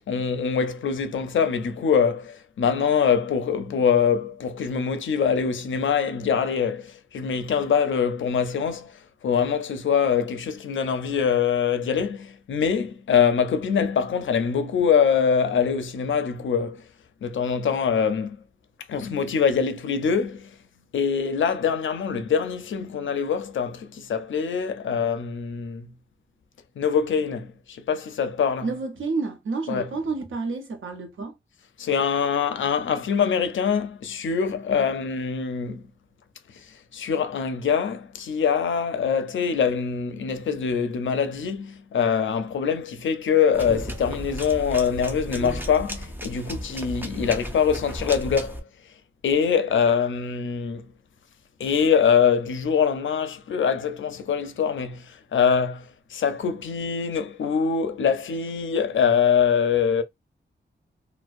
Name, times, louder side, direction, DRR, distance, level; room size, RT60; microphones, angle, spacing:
voice 1, 0.1-16.8 17.2-18.4 18.9-20.5 20.9-25.9 26.8-28.7 29.7-29.9 31.8-35.8 36.9-48.6 49.2-50.9 51.6-60.0, left 7 dB, 75° left, 0.4 m, -24 dB
voice 2, 28.6-31.3, right 4 dB, 85° right, 0.7 m, -29 dB
sound 1, 43.5-48.6, equal, 10° right, 0.4 m, -34 dB
2.5 x 2.0 x 2.4 m
wide cardioid pair, 155°, 20 cm